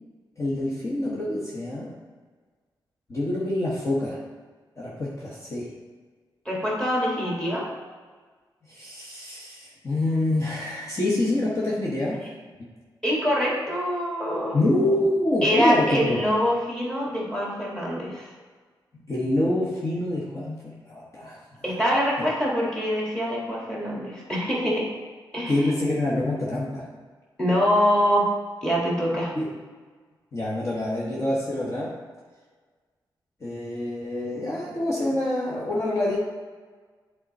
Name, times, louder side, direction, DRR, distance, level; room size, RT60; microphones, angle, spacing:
voice 1, 0.4-2.0 3.1-4.2 4.8-5.8 8.7-12.2 14.5-16.2 19.1-21.4 25.5-26.9 29.3-29.6 30.3-32.0 33.4-36.2, left 1 dB, 35° left, -5 dB, 1.2 m, -26 dB
voice 2, 6.5-7.6 13.0-14.6 15.4-18.3 21.6-24.9 25.3-25.7 27.4-28.3 28.6-29.3, equal, 10° left, -4 dB, 2.1 m, -24 dB
8.8 x 3.8 x 4.2 m, 1.5 s
wide cardioid pair, 105°, 8 cm